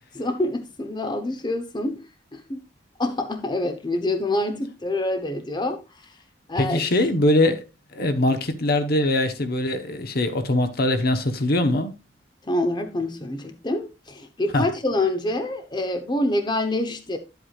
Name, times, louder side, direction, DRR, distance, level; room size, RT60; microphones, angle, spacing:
voice 1, 0.1-2.1 2.3-2.6 3.0-5.8 6.5-7.0 12.5-17.2, left 1 dB, 25° left, 0.9 m, -26 dB
voice 2, 6.6-7.6 7.9-11.9 14.5-14.7, left 1 dB, 55° left, 1.1 m, -22 dB
10.5 x 8.0 x 2.4 m
head